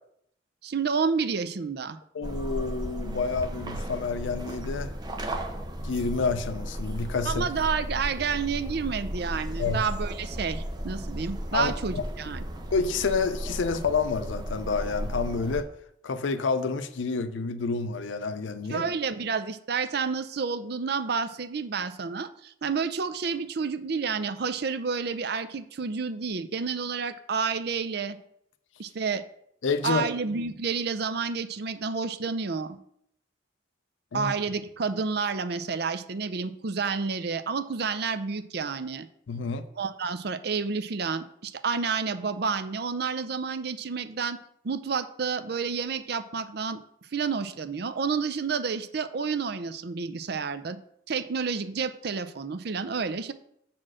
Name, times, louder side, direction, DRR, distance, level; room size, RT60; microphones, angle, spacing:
voice 1, 0.6-2.0 7.3-12.4 18.7-28.2 28.8-29.2 29.8-32.8 34.1-39.1 39.8-44.4 44.6-46.8 47.1-50.8 51.1-53.3, right 5 dB, 60° right, 11 dB, 0.5 m, -30 dB
voice 2, 2.1-4.9 5.8-7.5 9.6-9.8 11.5-12.0 12.7-15.7 16.0-18.8 29.6-30.1 34.1-34.3 39.3-39.7, left 4 dB, 80° left, 11 dB, 0.5 m, -29 dB
sound 1, 2.2-15.6, equal, 20° right, 0.8 m, -35 dB
7.5 x 4.4 x 6.2 m, 0.72 s
head